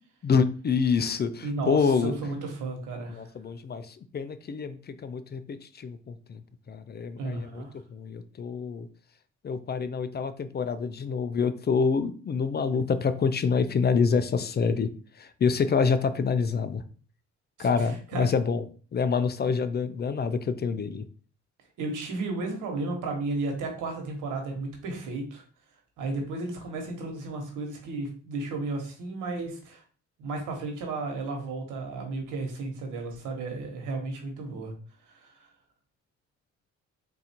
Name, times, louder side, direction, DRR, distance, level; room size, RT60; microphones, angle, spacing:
voice 1, 0.2-2.1 3.1-6.4 6.7-7.6 7.9-8.9 9.4-14.9 15.2-16.8 17.6-18.6 18.9-21.0, left 5 dB, 35° left, 12 dB, 0.4 m, -27 dB
voice 2, 1.4-3.3 7.2-7.7 17.6-18.3 21.8-25.4 26.0-29.8 30.2-34.7 35.1-35.4, right 3 dB, 90° right, 2 dB, 1.3 m, -33 dB
3.9 x 2.6 x 4.3 m, 0.40 s
cardioid pair, 90°, 30 cm